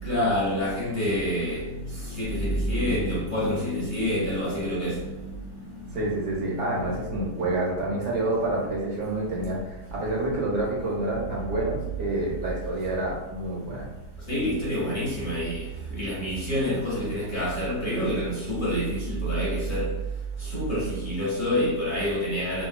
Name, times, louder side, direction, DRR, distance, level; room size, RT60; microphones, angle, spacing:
voice 1, 0.0-5.4 5.9-6.1 6.6-6.9 14.3-19.9 20.4-22.7, equal, 35° left, 0.9 m, -27 dB
voice 2, 5.9-13.9, right 2 dB, 80° right, 1.6 m, -28 dB
3.6 x 2.3 x 2.2 m
omnidirectional pair, 1.8 m